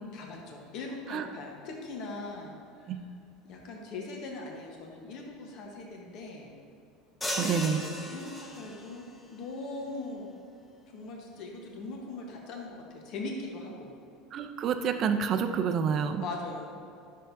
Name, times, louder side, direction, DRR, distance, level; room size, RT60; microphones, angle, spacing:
voice 1, 0.1-2.9 3.4-6.5 7.3-7.7 8.0-10.3 10.9-13.9 16.2-16.9, left 3 dB, 50° left, 0 dB, 1.1 m, -40 dB
sound 1, 7.2-9.0, equal, 10° left, 0.9 m, -36 dB
voice 2, 7.4-7.8 14.3-16.2, right 7 dB, 40° right, 8 dB, 0.5 m, -28 dB
10.0 x 6.4 x 2.7 m, 2.4 s
supercardioid pair, 140°, 0 cm